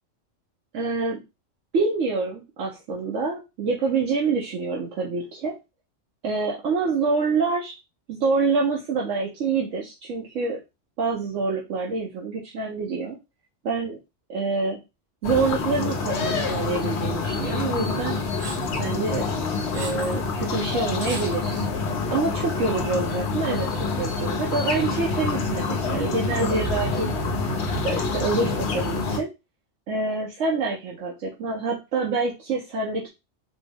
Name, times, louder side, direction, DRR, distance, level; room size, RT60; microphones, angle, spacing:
voice 1, 0.7-1.2 1.7-5.6 6.2-7.8 8.1-10.6 11.0-13.2 13.6-14.0 14.3-14.8 15.2-18.2 18.8-19.3 19.7-21.7 22.1-27.1 27.8-29.3 29.9-33.1, right 4 dB, 80° right, -2 dB, 1.1 m, -26 dB
sound 1, 15.2-29.2, left 3 dB, 65° left, 0.9 m, -27 dB
sound 2, 18.4-18.8 19.4-20.2 20.5-20.6 21.0-21.7, right 3 dB, 45° right, 0.7 m, -38 dB
4.1 x 2.0 x 3.4 m, 0.25 s
omnidirectional pair, 1.2 m